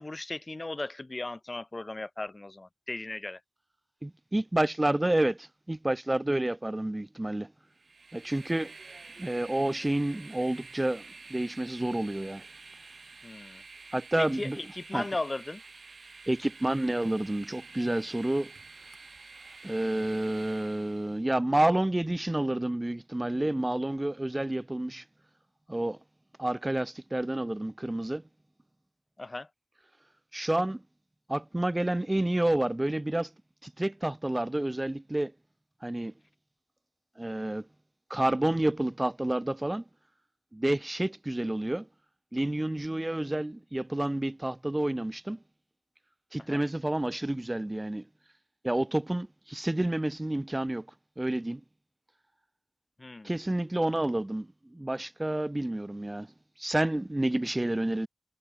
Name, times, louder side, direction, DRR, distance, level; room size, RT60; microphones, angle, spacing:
voice 1, 0.0-3.4 13.2-13.6 14.2-15.6 29.2-29.5 46.5-46.6 53.0-53.3, left 2 dB, 35° left, 0.7 m, -37 dB
voice 2, 4.0-7.5 8.1-8.7 9.2-11.0 11.3-12.4 13.9-14.6 14.9-15.0 16.3-18.5 19.6-25.0 25.7-26.0 26.4-28.2 30.3-30.8 31.3-33.3 33.6-35.3 35.8-36.1 37.2-37.7 38.1-39.8 40.5-41.9 42.3-45.4 46.3-48.0 48.6-50.9 51.2-51.6 53.2-56.3 56.6-58.1, right 1 dB, 20° right, 0.7 m, -29 dB
Train, 7.7-21.2, right 4 dB, 65° right, 1.3 m, -49 dB
wide cardioid pair, 75°, 0 cm